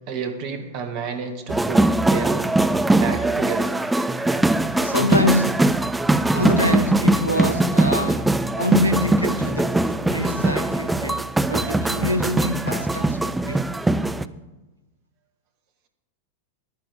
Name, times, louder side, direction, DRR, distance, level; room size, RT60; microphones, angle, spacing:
voice 1, 0.1-2.6 3.0-3.8, right 6 dB, 45° right, 1.1 m, -30 dB
sound 1, 1.5-14.2, right 2 dB, 5° right, 0.4 m, -21 dB
voice 2, 4.7-5.7 6.3-13.7, left 1 dB, 90° right, 0.8 m, -25 dB
10.5 x 9.4 x 5.4 m
figure-of-eight pair, 90°, 0 cm